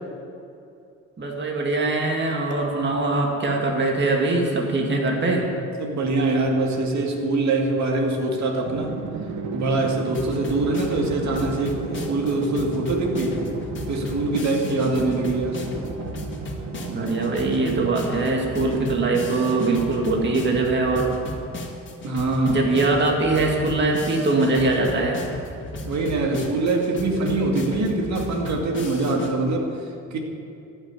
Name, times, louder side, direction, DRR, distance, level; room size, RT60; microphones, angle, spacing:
voice 1, 1.2-5.5 16.9-21.1 22.5-25.2, right 2 dB, 35° right, 0 dB, 2.2 m, -22 dB
voice 2, 5.8-9.0 9.5-13.4 13.9-15.6 22.0-22.9 25.8-29.8 30.1-30.2, right 2 dB, 65° right, 1 dB, 2.3 m, -24 dB
Drum, 8.7-21.0, right 4 dB, 90° right, 1.3 m, -34 dB
sound 1, 10.1-29.3, left 1 dB, 40° left, 2.2 m, -35 dB
14.0 x 6.5 x 9.9 m, 2.6 s
cardioid pair, 90°, 30 cm